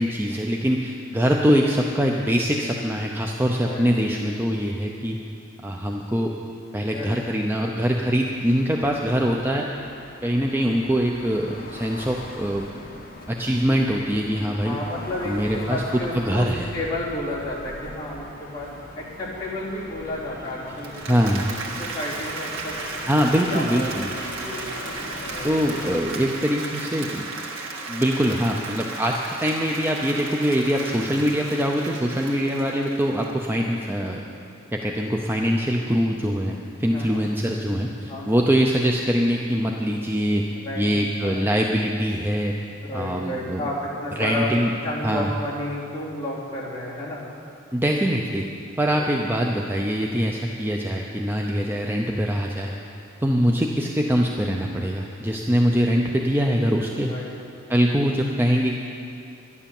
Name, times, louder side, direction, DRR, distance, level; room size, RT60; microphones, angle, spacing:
voice 1, 0.0-5.2 5.6-6.3 6.7-9.7 10.2-12.7 13.3-14.8 15.2-15.8 16.1-16.7 21.1-21.5 23.1-24.1 25.4-27.2 27.9-34.2 34.7-40.5 40.7-42.5 42.9-43.7 44.2-44.7 45.0-45.3 47.7-48.4 48.8-52.7 53.2-57.1 57.7-58.7, equal, 10° right, 0 dB, 0.6 m, -23 dB
voice 2, 6.9-7.4 14.6-18.7 18.9-21.3 21.8-22.8 23.5-23.9 24.4-24.6 25.3-25.5 36.9-37.2 38.1-38.4 40.6-40.9 41.2-41.4 42.8-44.5 44.8-47.2 48.9-49.1 57.0-57.3 57.7-57.9, left 1 dB, 20° left, -8 dB, 3.3 m, -32 dB
sound 1, 8.2-26.0, left 1 dB, 45° left, 1.5 m, -41 dB
Applause, 20.7-33.7, right 3 dB, 75° right, 1.7 m, -35 dB
11.5 x 11.0 x 7.2 m, 2.6 s
head